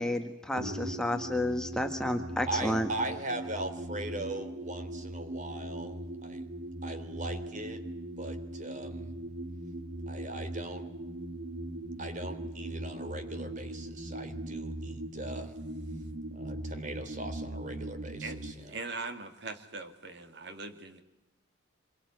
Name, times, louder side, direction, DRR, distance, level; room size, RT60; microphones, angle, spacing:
voice 1, 0.0-2.9, left 1 dB, 5° left, 5 dB, 1.5 m, -31 dB
sound 1, 0.6-18.5, right 1 dB, 70° right, 2.6 m, -40 dB
voice 2, 2.5-6.5 6.8-7.8 8.2-9.1 10.1-10.8 12.0-15.6 16.3-18.5, right 2 dB, 35° right, 9 dB, 3.2 m, -39 dB
voice 3, 18.7-21.0, right 3 dB, 55° right, 7 dB, 2.5 m, -41 dB
26.0 x 23.0 x 9.5 m, 0.94 s
head